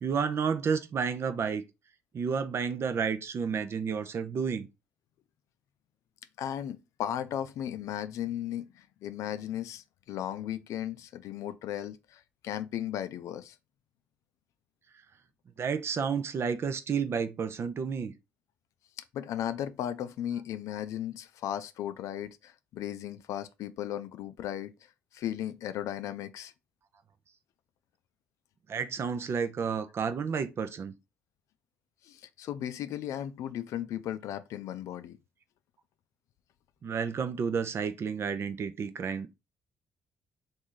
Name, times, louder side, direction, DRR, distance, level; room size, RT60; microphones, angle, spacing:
voice 1, 0.0-1.6 2.1-4.7 15.6-18.1 28.7-30.9 36.8-39.4, right 6 dB, 50° right, 0.5 m, -31 dB
voice 2, 6.4-13.5 19.1-24.7 25.1-26.5 32.0-35.2, left 11 dB, 70° left, 0.4 m, -36 dB
3.0 x 2.6 x 3.8 m
hypercardioid pair, 50°, 5 cm